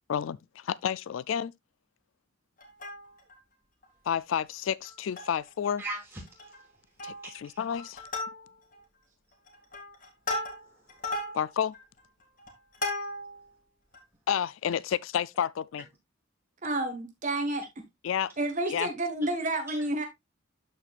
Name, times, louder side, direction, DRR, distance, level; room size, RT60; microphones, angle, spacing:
voice 1, 0.1-1.5 4.1-5.8 7.0-8.0 11.3-11.7 14.3-15.9 18.0-18.3 18.7-18.9, left 8 dB, 75° left, 0.3 m, -30 dB
Plucked string instrument, 2.6-3.4 3.8-3.9 4.2-4.4 4.8-5.5 5.8-5.9 6.3-6.6 7.0-7.4 7.7-8.8 9.3-13.4 13.9-14.0, left 2 dB, 45° left, 2.1 m, -36 dB
voice 2, 5.8-6.6 7.2-7.6 10.8-11.2 19.7-20.1, right 2 dB, 10° right, 3.2 m, -41 dB
voice 3, 16.6-17.6 18.4-20.0, right 2 dB, 40° right, 1.6 m, -30 dB
12.5 x 4.5 x 2.4 m
head